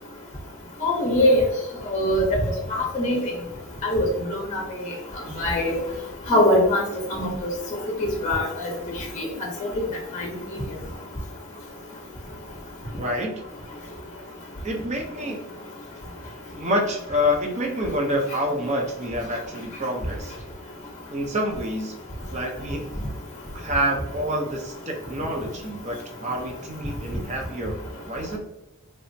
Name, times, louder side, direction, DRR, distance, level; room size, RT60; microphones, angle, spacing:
voice 1, 0.8-1.4 1.9-2.3 2.7-3.2 3.8-4.6 5.4-5.7 6.3-6.8 7.1-7.3 8.2-8.7 9.2-9.3 10.1-10.3, left 1 dB, 35° left, -3 dB, 0.7 m, -21 dB
voice 2, 13.0-13.4 14.6-15.4 16.5-20.3 21.1-21.9 22.3-22.9 23.5-28.4, equal, 30° right, 1 dB, 0.5 m, -27 dB
3.3 x 2.0 x 2.6 m, 0.95 s
head